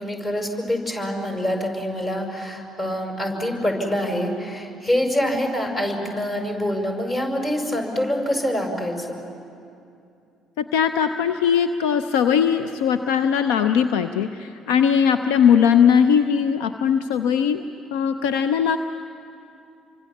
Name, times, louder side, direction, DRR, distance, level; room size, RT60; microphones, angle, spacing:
voice 1, 0.0-9.2, equal, 35° left, 3 dB, 5.7 m, -25 dB
voice 2, 10.6-17.6 17.9-18.8, left 7 dB, 70° left, 10 dB, 0.6 m, -19 dB
28.5 x 25.0 x 7.2 m, 2.6 s
figure-of-eight pair, 50°, 0 cm